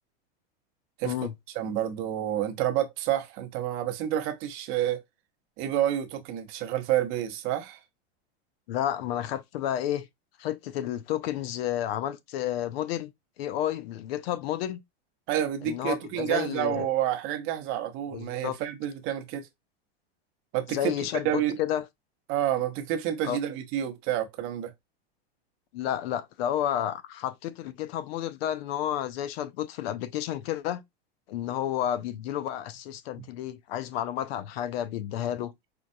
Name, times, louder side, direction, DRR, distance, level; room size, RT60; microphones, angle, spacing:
voice 1, 1.5-5.0 5.6-7.8 15.3-19.5 20.5-21.6 22.3-24.7, right 11 dB, 40° right, 0.8 m, -29 dB
voice 2, 8.7-10.1 10.4-13.1 13.4-14.8 15.6-16.9 18.1-18.6 20.7-21.9 23.2-23.4 25.7-30.8 31.3-35.5, left 11 dB, 70° left, 0.5 m, -31 dB
4.4 x 2.3 x 2.6 m
supercardioid pair, 140°, 32 cm